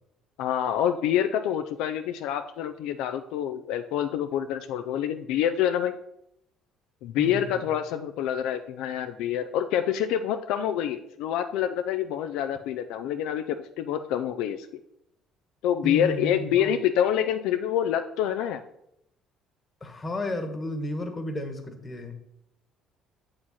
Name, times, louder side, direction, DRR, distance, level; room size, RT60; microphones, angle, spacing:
voice 1, 0.4-5.9 7.0-14.7 15.6-18.6, left 10 dB, 75° left, 8 dB, 0.3 m, -27 dB
voice 2, 7.2-7.6 15.8-16.7 19.8-22.2, left 1 dB, 30° left, 7 dB, 1.2 m, -33 dB
7.3 x 4.8 x 4.2 m, 0.80 s
supercardioid pair, 70°, 0 cm